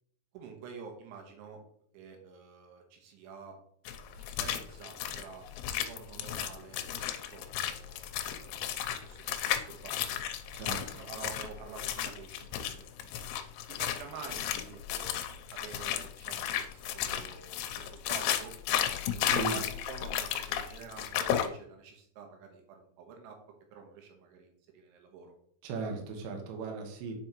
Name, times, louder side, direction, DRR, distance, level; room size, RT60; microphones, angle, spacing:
voice 1, 0.3-1.6 1.9-3.6 4.2-5.5 5.8-8.0 8.4-10.2 10.6-13.3 13.8-18.5 19.1-19.3 19.5-23.4 23.7-25.3, right 6 dB, 90° right, 3 dB, 3.6 m, -49 dB
sound 1, 3.9-21.5, left 10 dB, 80° left, 2.4 m, -34 dB
voice 2, 10.5-11.0 19.2-19.6 25.6-27.1, right 4 dB, 65° right, 2 dB, 2.4 m, -37 dB
8.9 x 5.2 x 3.0 m, 0.66 s
omnidirectional pair, 5.3 m